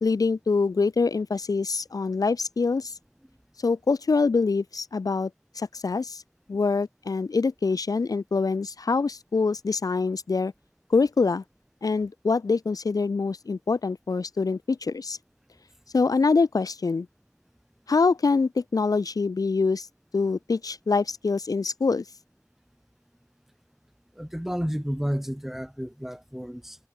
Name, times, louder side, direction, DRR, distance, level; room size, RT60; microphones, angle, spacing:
voice 1, 0.0-2.9 3.6-5.3 5.6-6.2 6.5-10.5 10.9-11.4 11.8-15.2 15.9-17.1 17.9-19.9 20.1-22.0, left 4 dB, 85° left, 0.4 m, -25 dB
voice 2, 24.2-26.8, equal, 5° right, 0.6 m, -31 dB
wide cardioid pair, 40°, 6 cm